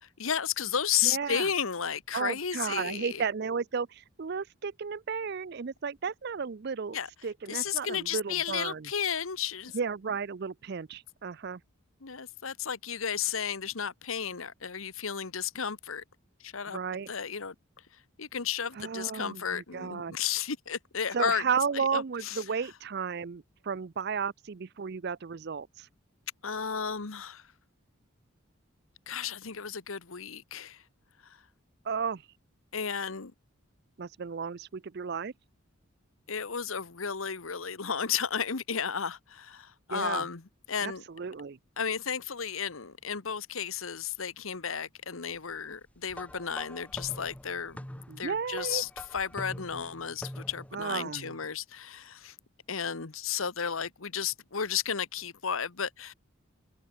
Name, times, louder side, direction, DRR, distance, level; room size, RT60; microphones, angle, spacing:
voice 1, 0.0-3.2 6.9-7.1 7.5-9.8 12.0-16.0 16.4-16.8 17.1-17.5 18.2-21.4 21.7-22.4 26.4-27.4 29.1-30.8 31.2-31.4 32.7-33.3 36.3-40.4 40.7-41.0 41.8-47.8 48.2-52.3 52.7-56.1, left 7 dB, 75° left, 1.2 m, -33 dB
voice 2, 1.0-1.5 2.1-7.0 7.2-8.9 9.7-11.6 16.7-17.1 18.8-20.2 21.1-25.9 31.8-32.2 34.0-35.3 39.9-40.2 40.8-41.6 48.1-48.8 50.7-51.3, right 6 dB, 50° right, 0.5 m, -33 dB
sound 1, 46.1-50.8, left 1 dB, 5° left, 0.8 m, -44 dB
head